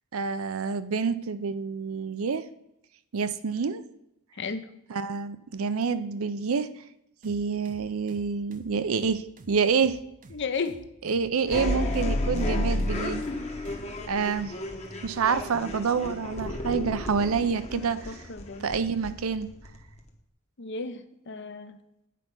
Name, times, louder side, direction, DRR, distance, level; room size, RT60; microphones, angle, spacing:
voice 1, 0.1-2.5 3.1-3.8 4.9-6.7 7.2-10.0 11.0-13.2 14.1-14.5 15.0-18.1 18.6-19.5, right 5 dB, 85° right, 13 dB, 0.5 m, -27 dB
sound 1, 7.2-13.9, right 3 dB, 40° right, 0.6 m, -50 dB
voice 2, 10.3-10.7 11.5-12.1 17.8-18.7 20.6-21.8, left 4 dB, 55° left, 10 dB, 0.7 m, -34 dB
sound 2, 11.5-20.1, left 1 dB, 30° left, 1.0 m, -32 dB
8.5 x 4.6 x 5.4 m, 0.80 s
head